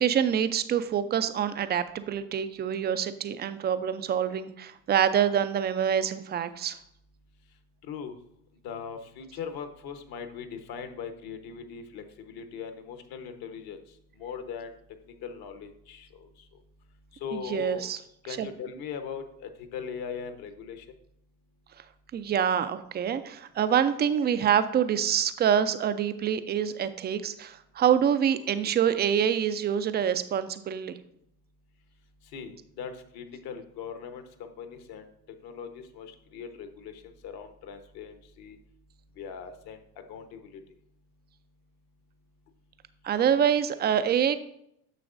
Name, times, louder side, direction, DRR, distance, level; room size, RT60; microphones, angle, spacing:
voice 1, 0.0-6.8 17.3-18.0 18.4-18.5 22.1-31.0 43.0-44.4, right 8 dB, 25° right, 12 dB, 0.4 m, -26 dB
voice 2, 8.6-13.8 14.2-14.7 15.2-16.3 17.2-17.9 18.3-20.8 32.3-35.0 35.4-38.6 39.2-39.8 40.1-40.6, left 6 dB, 50° left, 8 dB, 1.1 m, -40 dB
9.5 x 6.8 x 2.6 m, 0.75 s
hypercardioid pair, 80°, 47 cm